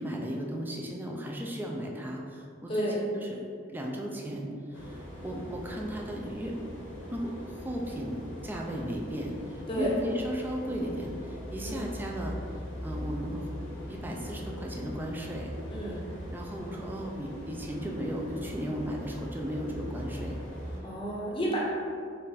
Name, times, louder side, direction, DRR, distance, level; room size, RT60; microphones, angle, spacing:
voice 1, 0.0-6.6 7.1-12.4 12.8-13.5 13.9-15.5 16.3-20.4, equal, 10° right, -1 dB, 0.4 m, -36 dB
voice 2, 2.7-3.0 9.7-9.9 11.6-11.9 15.7-16.0 20.8-21.6, equal, 25° left, -5 dB, 0.7 m, -31 dB
sound 1, 4.7-20.8, equal, 80° left, 1.2 m, -41 dB
4.1 x 2.5 x 4.0 m, 2.4 s
head